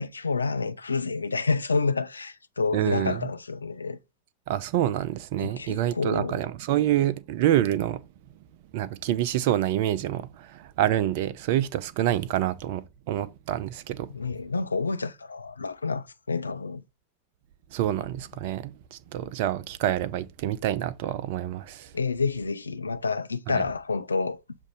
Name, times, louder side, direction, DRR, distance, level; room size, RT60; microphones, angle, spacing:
voice 1, 0.0-4.0 5.4-6.4 14.1-16.8 21.9-24.4, left 4 dB, 75° left, 0.3 m, -29 dB
voice 2, 2.7-3.2 4.5-8.0 8.7-14.1 17.7-21.9 23.5-23.6, right 12 dB, 50° right, 0.4 m, -27 dB
7.1 x 2.5 x 5.4 m
figure-of-eight pair, 90°, 0 cm